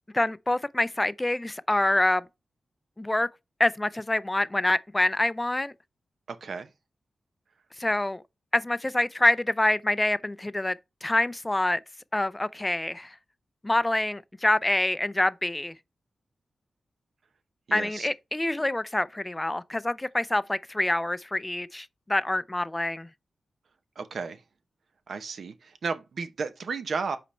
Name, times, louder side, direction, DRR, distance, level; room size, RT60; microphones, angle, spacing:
voice 1, 0.1-2.2 3.0-3.3 3.6-5.7 7.8-8.2 8.5-11.8 12.1-13.1 13.6-15.7 17.7-23.1, left 1 dB, 15° left, 0.3 m, -26 dB
voice 2, 6.3-6.7 17.7-18.1 24.0-24.4 25.1-27.2, right 5 dB, 70° right, 0.7 m, -33 dB
5.2 x 4.3 x 4.2 m
wide cardioid pair, 100°, 0 cm